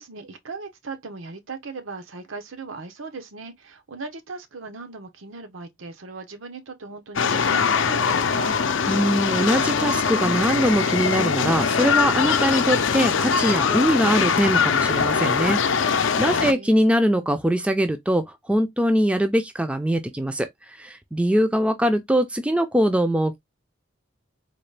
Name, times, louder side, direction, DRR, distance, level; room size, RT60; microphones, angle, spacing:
voice 1, 0.0-8.5 16.2-17.0, right 4 dB, 85° right, 0.8 m, -38 dB
sound 1, 7.2-16.5, left 6 dB, 70° left, 0.5 m, -22 dB
voice 2, 8.9-23.4, equal, 5° right, 0.4 m, -22 dB
3.8 x 2.3 x 3.2 m
head